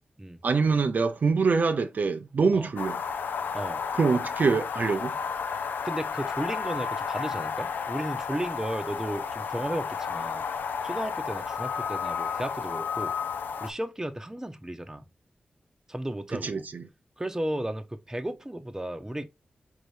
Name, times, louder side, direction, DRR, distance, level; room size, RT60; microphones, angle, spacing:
voice 1, 0.4-3.0 3.9-5.2 16.4-16.9, right 4 dB, 65° right, 0.5 m, -25 dB
sound 1, 2.8-13.7, left 6 dB, 90° left, 0.4 m, -32 dB
voice 2, 5.8-10.5 10.8-13.1 13.6-15.0 15.9-16.7 17.2-19.2, right 1 dB, 15° right, 0.7 m, -34 dB
4.4 x 2.7 x 3.2 m
cardioid pair, 45°, 3 cm